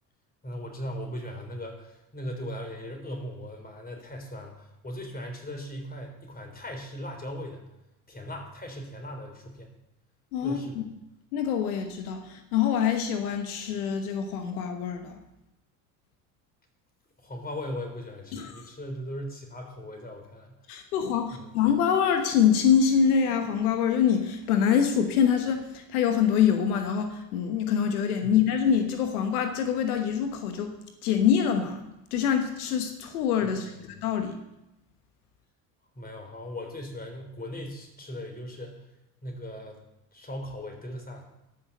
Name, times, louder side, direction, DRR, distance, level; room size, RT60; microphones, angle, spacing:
voice 1, 0.4-7.6 8.1-9.7 10.4-10.8 17.2-20.6 21.3-21.5 28.2-28.3 33.5-33.7 36.0-38.9 39.2-39.8 40.1-41.2, equal, 20° left, 3 dB, 3.9 m, -38 dB
voice 2, 10.3-10.8 11.3-15.2 18.3-18.6 20.7-30.7 31.0-34.4, left 8 dB, 90° left, 6 dB, 1.2 m, -25 dB
12.5 x 6.4 x 7.2 m, 0.92 s
hypercardioid pair, 75°, 43 cm